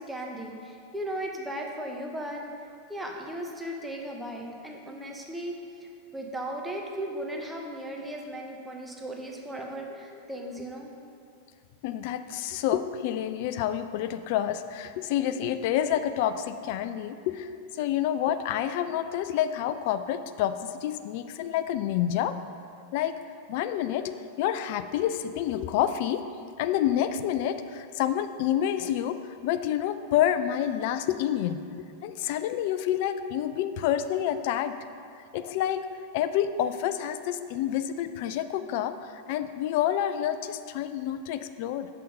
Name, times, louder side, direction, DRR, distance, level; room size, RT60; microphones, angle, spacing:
voice 1, 0.0-2.4 2.9-10.9, right 1 dB, 5° right, 0 dB, 0.9 m, -36 dB
voice 2, 11.8-22.4 22.9-23.2 23.5-26.3 26.6-34.8 35.3-35.9 36.1-41.9, left 10 dB, 50° left, 11 dB, 0.3 m, -28 dB
6.8 x 5.6 x 5.0 m, 2.3 s
figure-of-eight pair, 90°, 0 cm